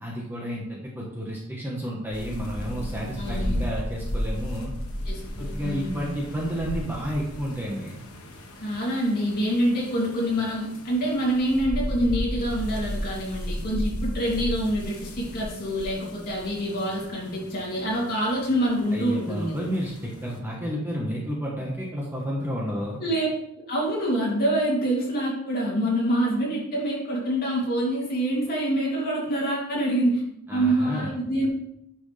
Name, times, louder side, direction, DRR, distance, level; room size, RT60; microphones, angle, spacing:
voice 1, 0.0-4.7 5.4-8.0 18.9-23.0 30.5-31.1, equal, 10° right, -3 dB, 1.3 m, -31 dB
sound 1, 2.1-20.4, equal, 80° left, 1.4 m, -34 dB
voice 2, 3.2-3.6 5.1-6.1 8.6-19.6 23.0-23.3 23.5-30.2 30.5-31.5, right 1 dB, 40° left, -5 dB, 3.0 m, -26 dB
9.3 x 6.2 x 3.4 m, 0.79 s
head